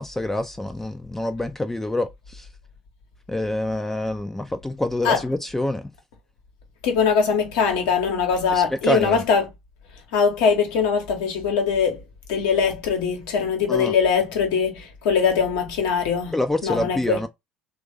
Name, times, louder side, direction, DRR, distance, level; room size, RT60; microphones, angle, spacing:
voice 1, 0.0-2.5 3.3-5.9 8.5-9.2 13.7-13.9 16.3-17.3, left 1 dB, 10° left, 0.4 m, -26 dB
voice 2, 6.8-9.5 10.1-12.0 12.3-17.2, left 6 dB, 70° left, 0.9 m, -22 dB
3.2 x 2.3 x 3.3 m
hypercardioid pair, 65°, 4 cm